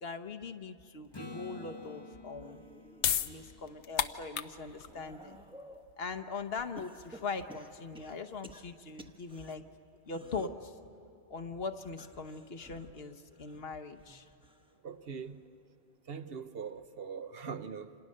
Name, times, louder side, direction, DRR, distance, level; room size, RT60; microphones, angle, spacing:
voice 1, 0.0-2.6 3.2-5.4 6.0-9.6 10.1-10.7 11.3-14.3, left 4 dB, 60° left, 1.2 m, -41 dB
Acoustic guitar / Strum, 1.1-4.9 9.7-9.8, left 2 dB, 25° left, 1.1 m, -50 dB
sound 1, 1.1-3.4 3.9-5.9 6.8-9.5 10.0-10.7 11.9-14.8 15.1-15.5 16.7-16.8, right 2 dB, 5° right, 1.0 m, -54 dB
sound 2, 2.6-9.3, left 8 dB, 80° left, 1.0 m, -37 dB
voice 2, 14.8-15.4 16.1-18.0, right 6 dB, 60° right, 1.1 m, -42 dB
29.0 x 27.0 x 6.5 m
omnidirectional pair, 1.1 m